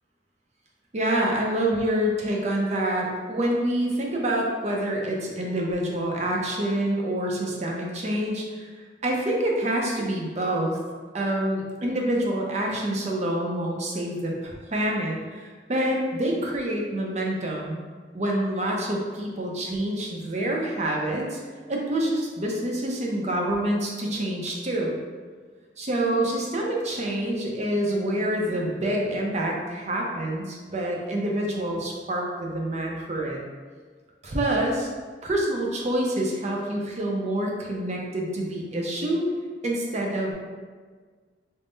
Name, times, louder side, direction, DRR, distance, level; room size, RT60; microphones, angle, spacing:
voice 1, 0.9-10.8 11.1-17.8 18.1-21.4 21.7-25.0 25.8-33.4 34.2-34.9 35.2-39.2 39.6-40.3, right 1 dB, 40° right, -1 dB, 0.6 m, -27 dB
3.6 x 2.1 x 3.8 m, 1.5 s
head